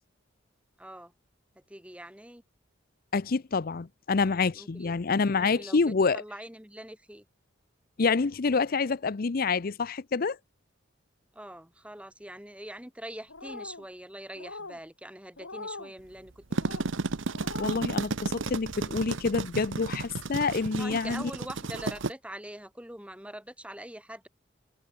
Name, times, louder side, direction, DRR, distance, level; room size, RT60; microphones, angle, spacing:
voice 1, 0.8-1.1 1.7-2.4 4.5-4.9 5.3-7.2 11.3-16.9 20.8-24.3, right 1 dB, 5° right, 7.4 m, -43 dB
voice 2, 3.1-6.2 8.0-10.4 17.6-21.2, left 4 dB, 50° left, 0.6 m, -27 dB
sound 1, 13.3-13.8 14.3-14.8 15.4-15.9 16.5-16.9 17.3-17.9, left 3 dB, 85° left, 6.3 m, -41 dB
sound 2, 16.3-22.1, right 3 dB, 70° right, 1.0 m, -33 dB
head